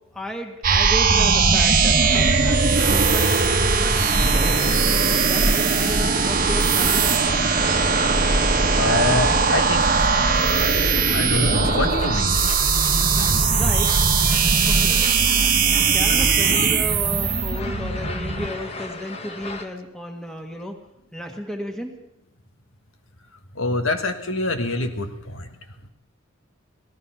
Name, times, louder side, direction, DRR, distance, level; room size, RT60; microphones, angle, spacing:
voice 1, 0.1-3.3 3.8-7.6 13.5-13.9 14.7-15.1 15.9-20.8 21.1-22.0, equal, 5° left, 2 dB, 1.7 m, -33 dB
sound 1, 0.6-18.5, right 4 dB, 45° right, 1.2 m, -19 dB
sound 2, 2.0-19.7, left 3 dB, 30° left, 1.3 m, -35 dB
voice 2, 8.8-9.8 11.1-12.4 23.5-25.5, left 2 dB, 85° left, 6 dB, 1.6 m, -25 dB
sound 3, 9.8-14.9, left 2 dB, 55° left, 2.7 m, -42 dB
17.5 x 14.0 x 5.8 m, 0.86 s
head